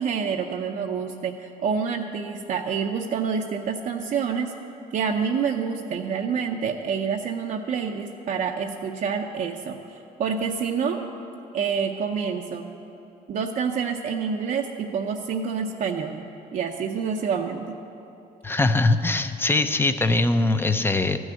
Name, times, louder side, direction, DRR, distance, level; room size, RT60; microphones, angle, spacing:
voice 1, 0.0-4.5 4.9-11.0 11.5-12.7 13.3-16.2 16.5-17.8, right 6 dB, 50° right, 2 dB, 0.7 m, -27 dB
voice 2, 18.4-21.2, left 2 dB, 15° left, 9 dB, 0.6 m, -21 dB
13.5 x 6.3 x 8.8 m, 2.9 s
cardioid pair, 110°, 17 cm